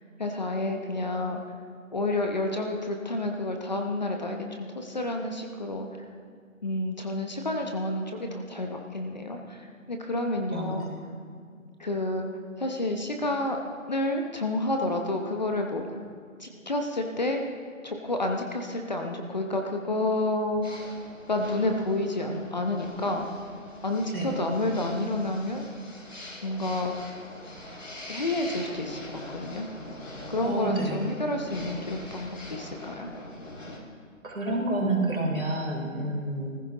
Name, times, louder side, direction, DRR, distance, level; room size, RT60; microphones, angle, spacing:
voice 1, 0.2-1.4 1.9-5.9 6.6-10.9 11.8-12.3 12.6-13.6 13.9-16.0 16.4-17.4 17.8-20.8 21.3-23.3 23.8-25.7 26.4-27.0 28.1-29.7 30.3-33.1, left 2 dB, 30° left, 3 dB, 0.9 m, -29 dB
sound 1, 20.6-33.8, left 1 dB, 65° left, 3.1 m, -43 dB
voice 2, 30.4-31.1 34.2-36.5, right 2 dB, 85° right, -1 dB, 3.5 m, -29 dB
19.0 x 15.0 x 3.0 m, 2.1 s
figure-of-eight pair, 155°, 41 cm